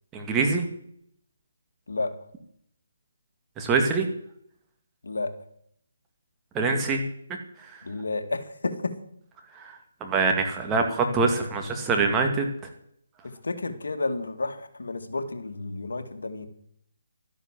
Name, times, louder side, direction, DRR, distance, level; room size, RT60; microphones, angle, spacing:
voice 1, 0.1-0.7 3.6-4.1 6.5-7.0 9.6-9.7 10.0-12.5, right 4 dB, 15° right, 3 dB, 2.2 m, -24 dB
voice 2, 7.8-8.9 13.2-16.5, left 3 dB, 80° left, 7 dB, 2.0 m, -31 dB
13.0 x 10.5 x 7.5 m, 0.70 s
figure-of-eight pair, 155°, 0 cm